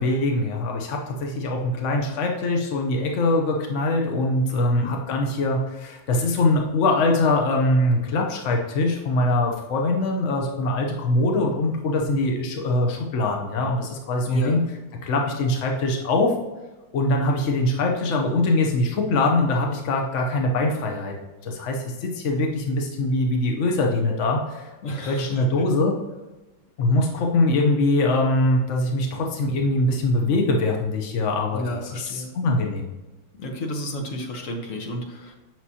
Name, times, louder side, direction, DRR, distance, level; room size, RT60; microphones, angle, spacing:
voice 1, 0.0-14.6 15.0-16.3 16.9-21.1 21.4-24.7 25.1-25.9 26.8-32.9, left 2 dB, 65° left, 1 dB, 0.7 m, -23 dB
voice 2, 4.5-4.9 14.3-14.6 24.8-25.7 31.5-32.3 33.4-35.3, equal, 50° left, 2 dB, 1.1 m, -31 dB
7.5 x 6.1 x 2.8 m, 1.1 s
omnidirectional pair, 2.3 m